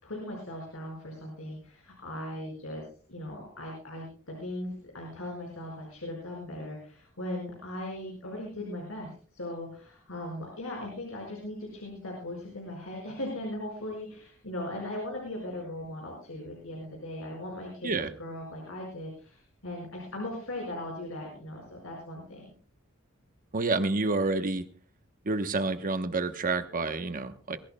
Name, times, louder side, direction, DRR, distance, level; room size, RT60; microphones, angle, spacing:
voice 1, 0.0-2.8 3.1-17.9 18.2-22.5, left 1 dB, 75° left, -1 dB, 5.1 m, -38 dB
voice 2, 23.5-24.7 25.2-27.6, right 3 dB, 40° right, 9 dB, 1.0 m, -29 dB
22.5 x 15.0 x 2.2 m, 0.42 s
head